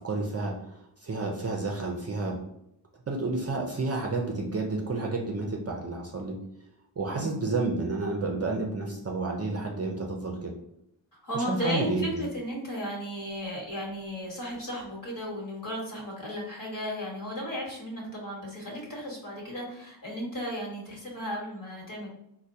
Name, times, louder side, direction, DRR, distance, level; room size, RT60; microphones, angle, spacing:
voice 1, 0.0-2.4 3.1-6.4 7.0-10.5 11.4-12.2, right 3 dB, 35° right, 1 dB, 0.4 m, -30 dB
voice 2, 7.2-7.5 11.1-22.1, equal, 50° left, -3 dB, 1.3 m, -35 dB
4.3 x 2.2 x 2.6 m, 0.79 s
wide cardioid pair, 115°, 44 cm